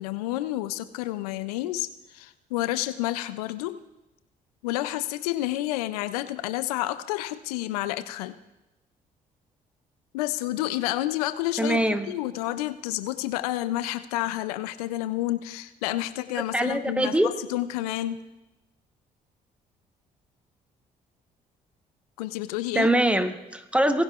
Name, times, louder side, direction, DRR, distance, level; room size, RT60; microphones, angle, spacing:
voice 1, 0.0-3.8 4.6-8.4 10.1-18.2 22.2-22.9, left 15 dB, 85° left, 13 dB, 0.4 m, -30 dB
voice 2, 11.6-12.1 16.5-17.3 22.7-24.0, right 1 dB, 5° right, 9 dB, 1.0 m, -23 dB
19.0 x 11.0 x 2.4 m, 0.97 s
hypercardioid pair, 50°, 19 cm